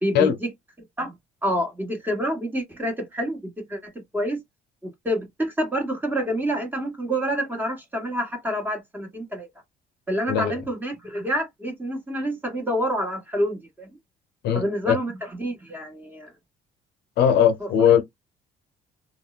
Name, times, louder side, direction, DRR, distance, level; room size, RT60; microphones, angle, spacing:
voice 1, 0.0-0.3 1.0-1.1 1.4-4.4 5.0-9.5 10.1-13.9 14.5-16.3 17.6-17.9, equal, 10° right, 1.2 m, -28 dB
voice 2, 14.4-15.0 17.2-18.0, left 9 dB, 75° left, 0.6 m, -19 dB
3.5 x 2.1 x 2.4 m
cardioid pair, 110°, 17 cm